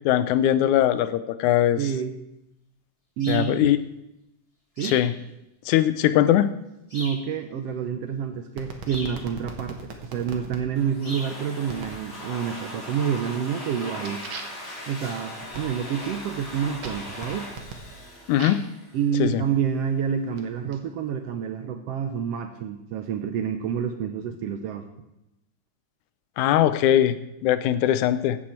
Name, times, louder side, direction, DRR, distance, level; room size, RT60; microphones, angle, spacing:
voice 1, 0.1-1.8 3.3-3.8 4.8-5.1 5.7-6.5 18.3-18.6 19.2-19.4 26.4-27.2 27.4-28.4, left 12 dB, 85° left, 14 dB, 2.0 m, -20 dB
voice 2, 1.8-2.1 3.2-3.7 4.8-5.0 6.9-14.2 14.9-17.5 18.9-24.9, right 7 dB, 75° right, 7 dB, 1.5 m, -28 dB
sound 1, 3.2-3.5 4.8-5.1 6.9-7.3 8.9-9.2 11.0-11.3, left 1 dB, 10° left, 2.2 m, -37 dB
sound 2, 8.6-10.6 11.7-12.0 12.5-13.0 13.4-18.8 19.5-20.8, right 4 dB, 50° right, 1.7 m, -41 dB
Domestic sounds home sounds, 10.8-19.2, left 1 dB, 35° left, 5.3 m, -39 dB
15.0 x 8.4 x 4.4 m, 0.89 s
omnidirectional pair, 3.4 m